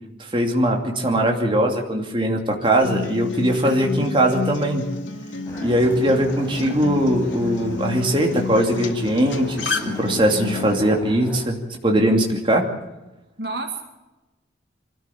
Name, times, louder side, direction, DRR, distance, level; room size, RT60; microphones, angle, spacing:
voice 1, 0.2-4.8 5.6-11.6 11.8-12.6, right 1 dB, 25° right, 2 dB, 2.7 m, -20 dB
Acoustic guitar, 2.8-10.8, left 4 dB, 85° left, 2.5 m, -30 dB
voice 2, 3.6-4.1 13.4-13.8, right 2 dB, 55° right, 5 dB, 2.2 m, -31 dB
sound 1, 5.4-11.4, equal, 15° left, 6.0 m, -38 dB
24.5 x 13.5 x 8.5 m, 1.0 s
head